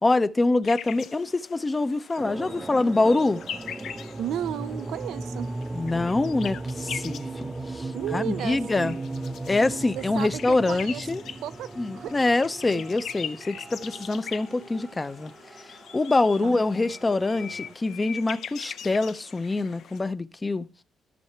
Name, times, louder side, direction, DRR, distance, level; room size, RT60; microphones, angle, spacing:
voice 1, 0.0-3.4 5.7-8.9 9.5-11.2 11.8-15.3 15.9-20.7, left 2 dB, 20° left, 0.6 m, -25 dB
sound 1, 0.6-20.0, left 8 dB, 70° left, 0.6 m, -42 dB
sound 2, 2.2-17.7, right 2 dB, 25° right, 0.6 m, -37 dB
voice 2, 4.2-5.5 7.9-9.0 10.0-11.0 11.4-12.1 12.7-12.8 16.1-16.6, right 12 dB, 85° right, 0.4 m, -34 dB
13.5 x 5.7 x 4.4 m
cardioid pair, 90°, 0 cm